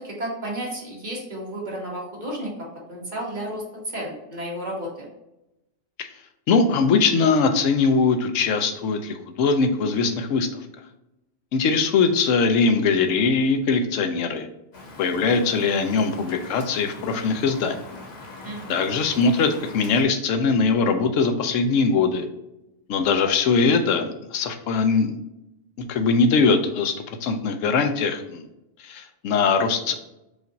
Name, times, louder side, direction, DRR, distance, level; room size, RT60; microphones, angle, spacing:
voice 1, 0.0-3.6 3.9-5.1 18.4-18.7, right 1 dB, 40° right, -4 dB, 1.7 m, -32 dB
voice 2, 6.5-10.5 11.5-14.5 15.0-17.8 18.7-22.3 22.9-25.2 25.8-28.4 28.8-29.9, left 4 dB, 90° left, 6 dB, 1.0 m, -21 dB
Rain, 14.7-20.0, left 2 dB, 60° left, 1.2 m, -42 dB
5.0 x 2.5 x 4.0 m, 0.89 s
omnidirectional pair, 1.3 m